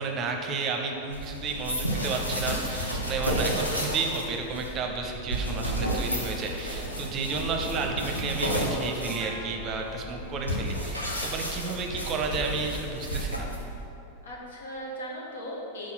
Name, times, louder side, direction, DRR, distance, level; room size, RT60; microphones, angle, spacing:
voice 1, 0.0-13.5, right 4 dB, 30° right, 2 dB, 0.8 m, -32 dB
sound 1, 1.1-13.8, equal, 85° left, 1.0 m, -32 dB
sound 2, 7.8-11.2, equal, 20° left, 1.6 m, -48 dB
voice 2, 14.2-15.9, equal, 65° left, -2 dB, 1.3 m, -38 dB
5.7 x 4.9 x 5.9 m, 2.9 s
figure-of-eight pair, 90°, 0 cm